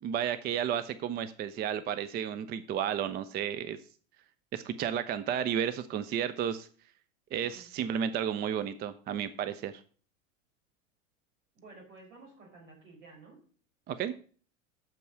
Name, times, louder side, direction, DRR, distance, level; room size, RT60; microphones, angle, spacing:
voice 1, 0.0-3.8 4.5-6.7 7.3-9.7 13.9-14.1, right 9 dB, 25° right, 12 dB, 0.5 m, -32 dB
voice 2, 11.6-13.4, right 3 dB, 65° right, 0 dB, 5.3 m, -53 dB
7.5 x 5.3 x 7.3 m, 0.43 s
hypercardioid pair, 90°, 41 cm